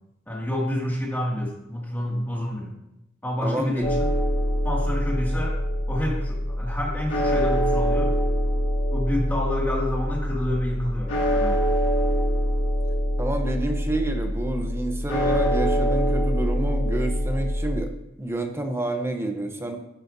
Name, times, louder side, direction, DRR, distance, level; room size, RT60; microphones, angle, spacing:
voice 1, 0.3-2.7 3.2-4.1 4.6-5.6 5.9-8.1 8.9-11.6, left 1 dB, 10° left, -3 dB, 2.3 m, -28 dB
voice 2, 3.4-3.9 13.2-17.9 18.2-19.8, right 1 dB, 15° right, 4 dB, 0.8 m, -28 dB
sound 1, 3.8-17.8, equal, 75° left, 2.0 m, -24 dB
10.5 x 10.0 x 2.7 m, 0.85 s
head